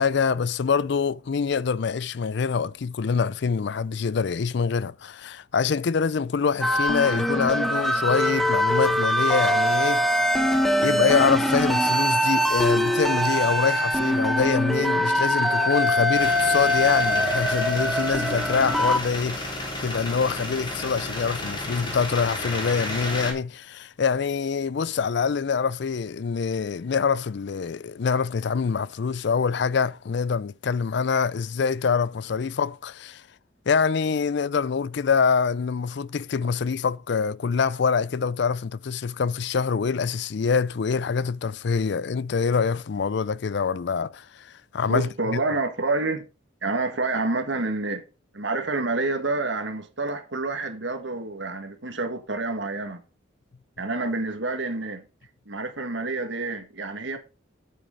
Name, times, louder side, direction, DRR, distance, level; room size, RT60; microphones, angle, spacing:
voice 1, 0.0-10.1 10.8-19.6 19.8-33.2 33.7-44.2 44.7-45.1, left 5 dB, 60° left, 0.4 m, -25 dB
sound 1, 6.6-19.0, equal, ahead, 1.0 m, -23 dB
sound 2, 16.2-23.3, left 1 dB, 25° left, 3.4 m, -32 dB
voice 2, 44.9-46.3 46.6-48.0 48.3-53.0 53.8-55.1 55.5-57.2, right 3 dB, 65° right, 1.8 m, -28 dB
9.3 x 8.5 x 3.9 m
head